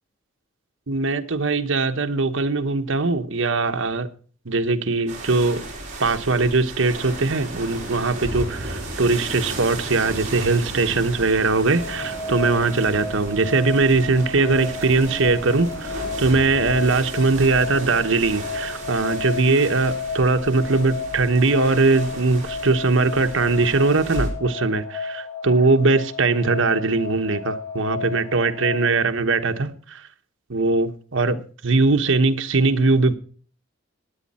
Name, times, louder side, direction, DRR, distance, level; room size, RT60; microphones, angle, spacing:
voice 1, 0.9-4.1 4.4-5.6 6.0-30.1 30.5-33.1, right 3 dB, 70° right, 1.1 m, -21 dB
sound 1, 5.1-24.3, right 2 dB, 35° right, 4.4 m, -35 dB
sound 2, 7.0-20.9, right 1 dB, 15° right, 4.5 m, -42 dB
sound 3, 10.8-28.9, left 3 dB, 10° left, 5.1 m, -33 dB
16.0 x 10.5 x 4.2 m
head